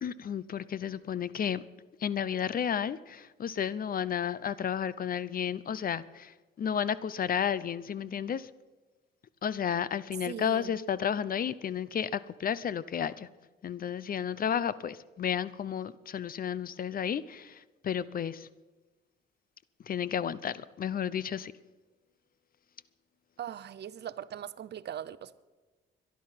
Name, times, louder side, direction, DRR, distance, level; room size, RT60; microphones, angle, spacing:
voice 1, 0.0-1.6 2.0-8.5 9.4-13.3 13.6-18.5 19.9-21.5, left 8 dB, 45° left, 18 dB, 0.7 m, -32 dB
voice 2, 10.3-10.7 23.4-25.4, right 10 dB, 60° right, 16 dB, 0.8 m, -40 dB
22.5 x 11.0 x 5.8 m, 1.3 s
cardioid pair, 90°, 20 cm